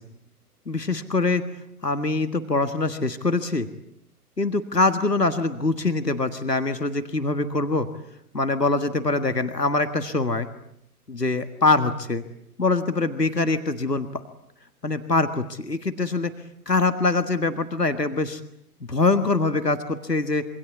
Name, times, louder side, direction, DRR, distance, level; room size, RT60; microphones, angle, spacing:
voice 1, 0.7-1.4 1.8-3.7 4.4-7.9 8.3-10.5 11.1-12.2 12.6-14.2 14.8-16.3 16.7-18.4 18.9-20.5, left 3 dB, 90° left, 9 dB, 1.7 m, -23 dB
26.5 x 24.5 x 8.4 m, 0.74 s
figure-of-eight pair, 120°, 47 cm